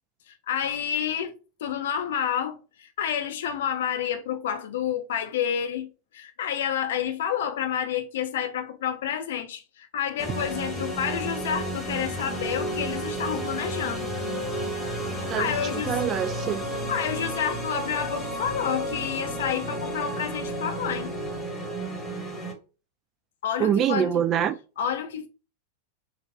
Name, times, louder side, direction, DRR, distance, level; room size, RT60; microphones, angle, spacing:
voice 1, 0.3-1.4 1.6-5.9 6.1-14.1 15.4-16.0 16.9-21.1 23.4-24.2 24.8-25.3, left 8 dB, 60° left, 0.6 m, -29 dB
sound 1, 10.2-22.5, right 1 dB, 5° left, 1.1 m, -32 dB
voice 2, 15.3-16.7 23.6-24.6, right 9 dB, 30° right, 0.3 m, -25 dB
4.0 x 2.4 x 2.7 m
figure-of-eight pair, 90°, 0 cm